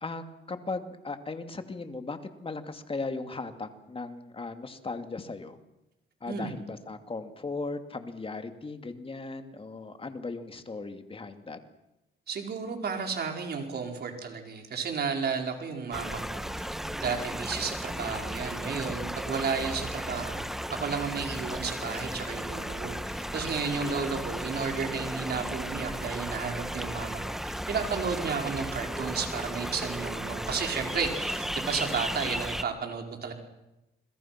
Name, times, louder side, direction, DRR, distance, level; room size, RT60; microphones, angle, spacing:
voice 1, 0.0-5.6 6.2-11.6, left 3 dB, 25° left, 8 dB, 2.5 m, -37 dB
voice 2, 12.3-16.7 17.0-33.3, right 5 dB, 55° right, 3 dB, 5.0 m, -33 dB
sound 1, 15.9-32.6, equal, ahead, 1.2 m, -35 dB
29.0 x 22.0 x 6.0 m, 0.92 s
cardioid pair, 90°, 20 cm